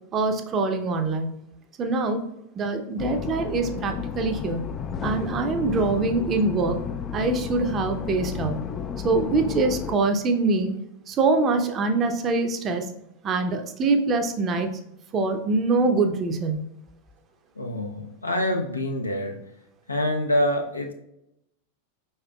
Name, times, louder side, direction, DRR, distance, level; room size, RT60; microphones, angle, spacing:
voice 1, 0.1-1.4 1.8-2.2 2.6-4.8 5.0-8.6 9.0-10.7 11.1-12.9 13.2-14.7 15.1-16.6, right 3 dB, 30° right, 6 dB, 0.6 m, -24 dB
Im Bähnli, 3.0-10.0, left 7 dB, 25° left, 0.3 m, -32 dB
voice 2, 17.6-19.4 19.9-20.9, left 1 dB, 80° left, 3 dB, 0.6 m, -26 dB
4.9 x 4.3 x 2.3 m, 0.81 s
figure-of-eight pair, 90°, 0 cm